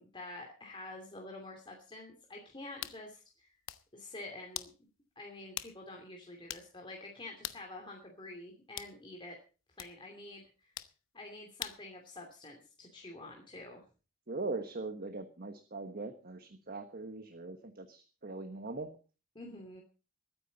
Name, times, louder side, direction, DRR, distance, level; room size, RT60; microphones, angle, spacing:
voice 1, 0.0-3.5 3.9-4.7 5.2-9.4 9.8-10.7 11.1-13.8 19.3-19.8, left 2 dB, 25° left, 0 dB, 2.7 m, -48 dB
sound 1, 2.8-3.0 3.5-3.9 4.5-4.8 5.6-5.8 6.1-6.2 6.5-6.7 7.4-7.7 8.8-9.0 9.8-9.9 10.8-11.0 11.6-11.9, left 12 dB, 65° left, 0.9 m, -42 dB
voice 2, 14.3-18.9, right 3 dB, 45° right, 8 dB, 1.3 m, -41 dB
22.0 x 9.7 x 4.1 m, 0.34 s
head